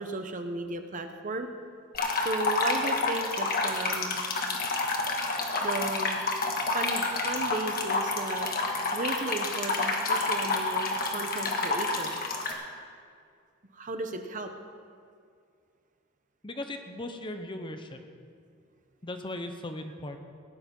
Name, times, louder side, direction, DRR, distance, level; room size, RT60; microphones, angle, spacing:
voice 1, 0.0-1.5 2.2-4.2 5.6-6.2 6.7-8.5 8.9-12.2 13.7-14.5, right 2 dB, 40° right, 7 dB, 0.9 m, -35 dB
sound 1, 1.9-12.5, left 3 dB, 45° left, 1.6 m, -29 dB
voice 2, 16.4-18.0 19.0-20.2, left 1 dB, 25° left, 6 dB, 0.8 m, -38 dB
18.0 x 9.7 x 5.5 m, 2.2 s
head